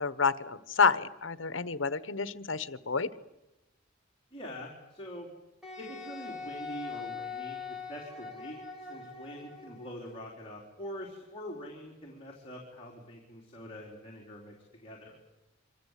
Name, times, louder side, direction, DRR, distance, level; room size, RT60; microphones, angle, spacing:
voice 1, 0.0-3.1, left 5 dB, 75° left, 15 dB, 1.2 m, -29 dB
voice 2, 4.3-5.3 5.8-14.5 14.8-15.2, equal, 30° left, -2 dB, 4.2 m, -44 dB
Wind instrument woodwind instrument, 5.6-9.9, left 5 dB, 5° right, 4.8 m, -42 dB
26.0 x 25.5 x 8.4 m, 0.97 s
head